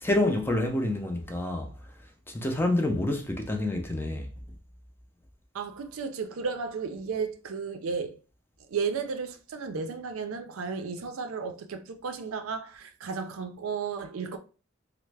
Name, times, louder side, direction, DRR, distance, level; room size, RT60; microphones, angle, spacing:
voice 1, 0.0-1.7 2.3-4.4, left 1 dB, 10° left, 0.5 m, -28 dB
voice 2, 5.5-8.2 8.7-14.4, right 5 dB, 80° right, 0.5 m, -33 dB
3.2 x 2.0 x 3.3 m
head